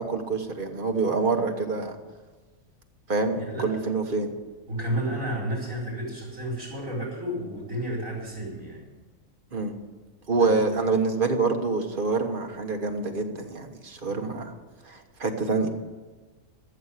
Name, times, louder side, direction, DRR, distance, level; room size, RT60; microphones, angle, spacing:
voice 1, 0.0-2.0 3.1-4.3 9.5-9.7 10.3-14.5 14.8-15.7, right 4 dB, 40° right, 4 dB, 1.4 m, -26 dB
voice 2, 3.3-3.7 4.7-8.8 10.3-10.7 14.1-14.2, right 1 dB, 70° right, -9 dB, 4.8 m, -32 dB
14.0 x 7.1 x 10.0 m, 1.3 s
omnidirectional pair, 1.4 m